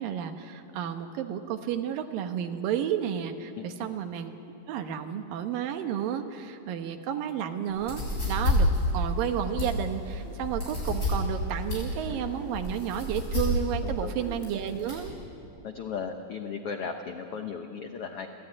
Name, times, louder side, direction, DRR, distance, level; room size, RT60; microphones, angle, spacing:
voice 1, 0.0-4.3 4.7-8.7 8.9-15.1, right 9 dB, 75° right, 7 dB, 2.8 m, -32 dB
sound 1, 7.7-15.1, left 2 dB, 25° left, 8.1 m, -30 dB
voice 2, 13.8-14.1 15.6-18.3, left 6 dB, 85° left, 5 dB, 1.2 m, -36 dB
30.0 x 13.0 x 9.7 m, 2.7 s
omnidirectional pair, 4.1 m